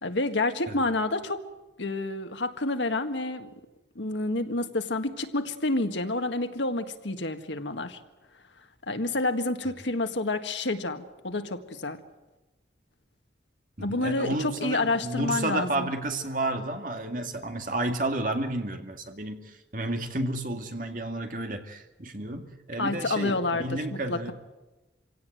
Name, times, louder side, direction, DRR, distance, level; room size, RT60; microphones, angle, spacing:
voice 1, 0.0-1.4 1.8-3.5 4.0-8.0 8.9-12.0 13.8-15.9 22.8-23.7 23.9-24.3, left 2 dB, 90° left, 8 dB, 1.8 m, -29 dB
voice 2, 13.8-24.3, right 2 dB, 45° right, 5 dB, 2.2 m, -31 dB
26.0 x 17.0 x 9.2 m, 1.1 s
head